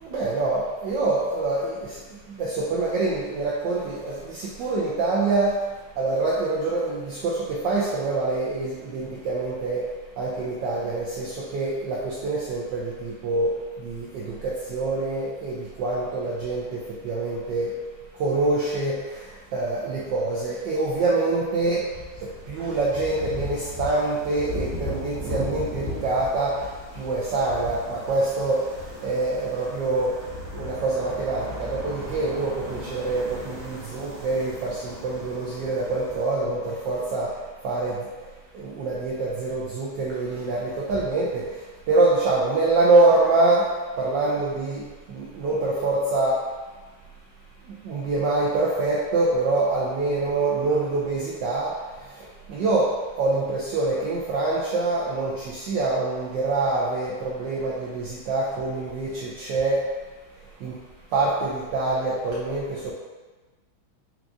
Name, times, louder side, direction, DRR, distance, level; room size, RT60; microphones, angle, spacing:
voice 1, 0.0-2.0 2.4-5.6 6.0-9.8 10.2-13.5 13.8-17.7 18.2-19.2 19.5-21.8 22.2-26.7 27.0-28.6 29.0-30.1 30.5-37.3 37.6-38.0 38.5-41.5 41.9-43.7 44.0-46.4 47.8-51.7 52.5-59.8 60.6-60.7 61.1-62.9, right 2 dB, 75° right, -5 dB, 1.1 m, -25 dB
sound 1, 21.6-36.3, left 1 dB, 25° right, 0.3 m, -37 dB
5.9 x 2.4 x 2.5 m, 1.3 s
omnidirectional pair, 2.4 m